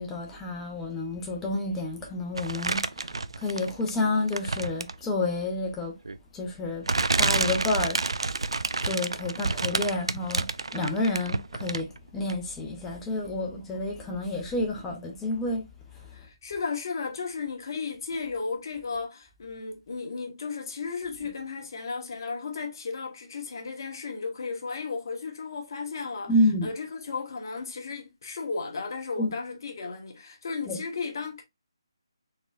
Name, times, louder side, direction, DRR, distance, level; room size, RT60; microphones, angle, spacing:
voice 1, 0.0-3.1 3.4-5.9 6.3-6.8 7.2-8.0 8.8-10.5 10.7-15.6 26.3-26.7 29.2-29.3 30.7-30.8, left 2 dB, 10° left, 0.7 m, -29 dB
sound 1, 2.4-3.9 4.3-5.1 6.1-6.2 6.9-12.0 12.3-12.4, right 3 dB, 85° right, 0.4 m, -29 dB
voice 2, 16.1-26.3 26.6-31.4, left 4 dB, 45° left, 1.2 m, -34 dB
4.1 x 3.7 x 2.4 m
figure-of-eight pair, 160°, 3 cm